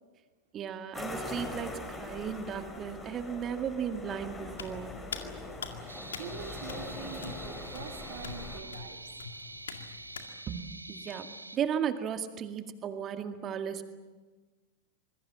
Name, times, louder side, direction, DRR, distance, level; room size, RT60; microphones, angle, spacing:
voice 1, 0.5-5.0 10.5-13.9, right 8 dB, 30° right, 7 dB, 2.0 m, -35 dB
sound 1, 0.9-8.6, left 2 dB, 10° left, 5.2 m, -42 dB
Hands, 4.5-10.3, left 7 dB, 65° left, 2.1 m, -45 dB
voice 2, 5.8-9.1, right 7 dB, 55° right, 4 dB, 3.0 m, -45 dB
sound 2, 5.9-11.6, right 2 dB, 85° right, 1.3 m, -46 dB
26.0 x 22.0 x 7.6 m, 1.3 s
figure-of-eight pair, 90°, 0 cm